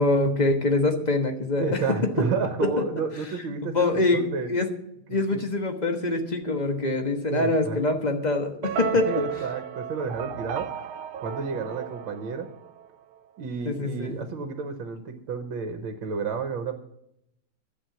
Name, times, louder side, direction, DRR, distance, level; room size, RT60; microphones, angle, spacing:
voice 1, 0.0-1.8 3.6-4.7 5.1-9.1 11.5-11.6 13.6-14.3, left 2 dB, 25° left, 5 dB, 1.0 m, -24 dB
voice 2, 1.6-4.5 5.1-5.4 7.3-7.8 9.1-10.9 11.2-12.5 13.4-16.7, right 5 dB, 70° right, 7 dB, 1.8 m, -31 dB
sound 1, 8.6-12.9, right 9 dB, 85° right, 1.6 m, -34 dB
12.0 x 7.6 x 7.1 m, 0.79 s
omnidirectional pair, 2.3 m